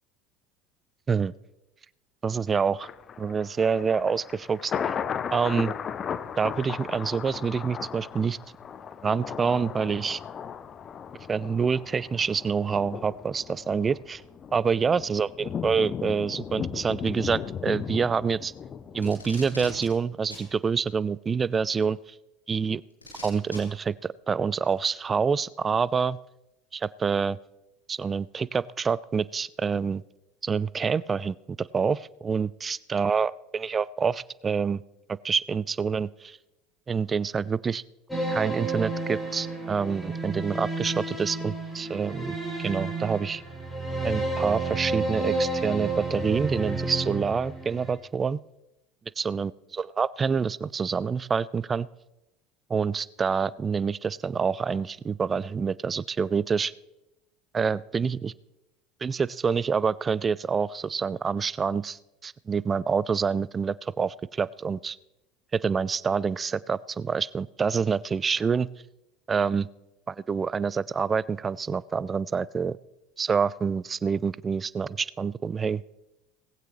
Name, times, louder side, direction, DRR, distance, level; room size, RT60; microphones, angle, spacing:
voice 1, 2.2-2.9 3.2-4.9 5.3-5.7 6.4-8.4 9.0-10.2 11.3-14.2 14.5-18.5 18.9-22.0 22.5-22.8 23.2-26.2 26.7-27.4 27.9-30.0 30.4-34.8 35.2-36.4 36.9-37.8 38.3-43.4 44.0-48.4 49.2-51.9 52.7-56.7 57.5-58.3 59.0-65.0 65.5-68.7 69.3-69.7 70.1-72.8 73.2-75.8, right 5 dB, 25° right, 22 dB, 0.4 m, -27 dB
Thunder, 2.8-19.9 20.3-20.4, left 7 dB, 30° left, 0.7 m, -36 dB
Packing tape duct tape, 19.0-19.9 20.3-20.5 21.8-21.9 23.0-23.6 24.7-24.8, left 1 dB, 85° left, 3.5 m, -41 dB
sound 1, 38.1-47.9, right 2 dB, 10° left, 5.2 m, -31 dB
19.0 x 16.0 x 3.1 m, 0.93 s
figure-of-eight pair, 70°, 0 cm